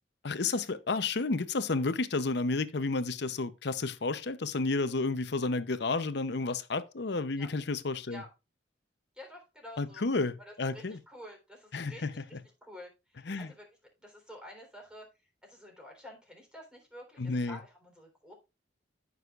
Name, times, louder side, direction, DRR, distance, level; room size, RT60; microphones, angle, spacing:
voice 1, 0.2-8.2 9.8-11.0 11.7-12.1 13.3-13.5 17.2-17.6, left 3 dB, 65° left, 0.7 m, -31 dB
voice 2, 9.1-10.0 10.4-13.7 14.0-15.1 15.4-18.3, left 1 dB, 5° right, 3.7 m, -50 dB
14.5 x 6.4 x 2.4 m
head